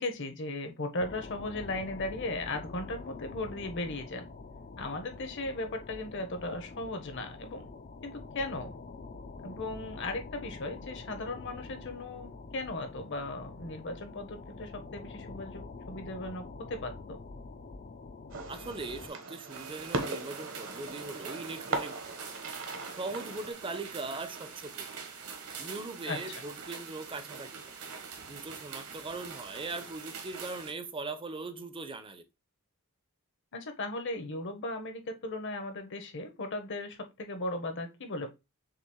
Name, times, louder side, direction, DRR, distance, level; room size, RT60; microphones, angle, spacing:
voice 1, 0.0-4.3 4.8-7.7 8.0-8.7 9.4-17.2 26.1-26.2 33.5-38.3, left 2 dB, 55° left, 1.1 m, -37 dB
sound 1, 1.0-19.1, left 3 dB, 40° left, 0.5 m, -46 dB
Fireworks, 18.3-23.5, right 2 dB, 60° right, 1.0 m, -38 dB
voice 2, 18.5-22.1 23.0-24.9 25.6-27.6 28.3-32.2, right 3 dB, 25° right, 0.6 m, -40 dB
sound 2, 19.5-30.7, right 5 dB, 75° right, 1.4 m, -44 dB
6.6 x 2.5 x 3.0 m
head